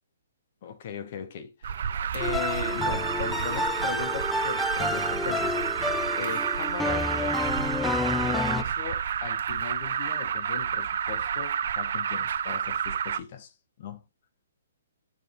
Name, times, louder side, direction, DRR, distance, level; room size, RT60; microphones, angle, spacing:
voice 1, 0.6-5.6 6.1-7.6 8.2-14.0, left 7 dB, 45° left, 1.1 m, -39 dB
Alarm, 1.6-13.2, right 8 dB, 60° right, 0.5 m, -30 dB
sound 1, 2.2-8.6, left 2 dB, 5° left, 0.3 m, -30 dB
7.4 x 3.8 x 4.8 m
hypercardioid pair, 165°, 0 cm